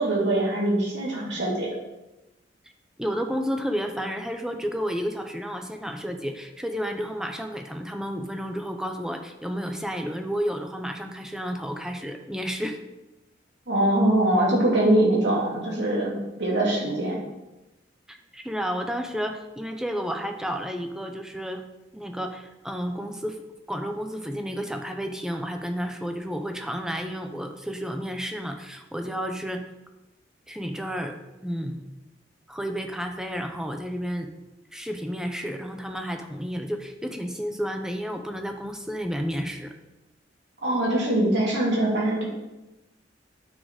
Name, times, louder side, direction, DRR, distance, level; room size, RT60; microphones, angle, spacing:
voice 1, 0.0-1.7 13.7-16.1 16.4-17.2 40.6-42.2, right 1 dB, 65° right, -5 dB, 3.4 m, -22 dB
voice 2, 3.0-12.8 18.1-21.6 21.9-23.4 23.7-29.7 30.5-31.8 32.5-34.3 34.7-39.7, equal, 5° right, 5 dB, 0.7 m, -31 dB
9.5 x 6.5 x 5.1 m, 1.0 s
head